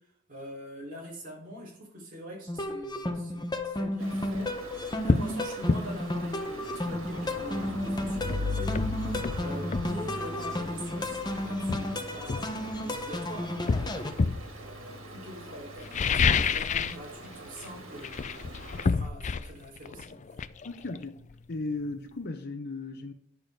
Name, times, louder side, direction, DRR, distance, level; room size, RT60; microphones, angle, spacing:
voice 1, 0.3-4.8 5.0-14.1 14.6-18.4 18.8-20.2, equal, 40° right, 4.2 m, -44 dB
sound 1, 2.5-14.1, left 1 dB, 20° left, 0.9 m, -33 dB
Stream, 4.0-18.9, left 1 dB, 85° right, 2.4 m, -40 dB
sound 2, 4.4-4.5 5.1-5.3 5.7-5.9 7.8-7.9 8.3-10.0 11.0-11.2 11.7-13.1 13.7-14.5 15.8-17.1 17.3-17.7 18.0-21.6 21.9-22.0, left 4 dB, 35° left, 0.4 m, -28 dB
voice 2, 20.6-21.2 21.5-23.1, left 3 dB, 50° left, 0.8 m, -36 dB
10.5 x 6.9 x 3.8 m
head